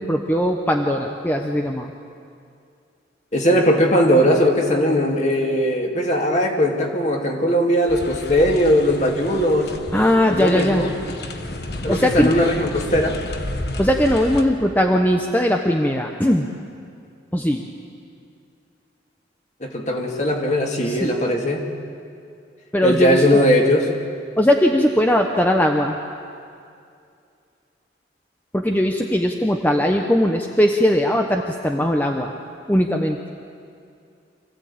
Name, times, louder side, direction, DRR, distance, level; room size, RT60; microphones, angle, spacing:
voice 1, 0.0-1.9 9.9-10.8 11.9-12.3 13.8-16.5 17.3-17.6 20.8-21.1 22.7-23.4 24.4-26.0 28.5-32.3 32.7-33.2, left 1 dB, 10° left, 2 dB, 0.9 m, -19 dB
voice 2, 3.3-9.7 10.3-10.9 11.8-13.2 19.6-21.6 22.8-23.9, equal, 40° left, 1 dB, 2.4 m, -19 dB
sound 1, 7.9-14.4, left 1 dB, 60° left, 1.4 m, -31 dB
25.5 x 15.5 x 8.7 m, 2.4 s
head